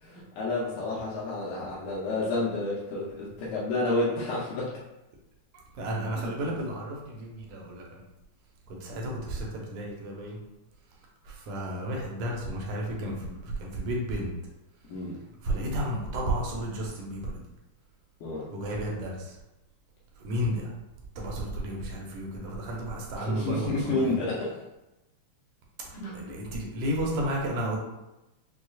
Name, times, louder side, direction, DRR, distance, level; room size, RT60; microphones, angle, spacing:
voice 1, 0.0-4.7 6.2-6.3 14.9-15.2 18.2-18.5 23.3-24.5 26.0-26.2, left 2 dB, 80° left, -6 dB, 2.2 m, -30 dB
voice 2, 5.8-8.0 8.7-10.4 11.2-14.3 15.4-17.5 18.5-19.4 20.2-20.7 21.2-24.2 26.1-27.8, right 1 dB, 75° right, -2 dB, 1.9 m, -32 dB
6.0 x 2.3 x 2.3 m, 0.96 s
omnidirectional pair, 3.7 m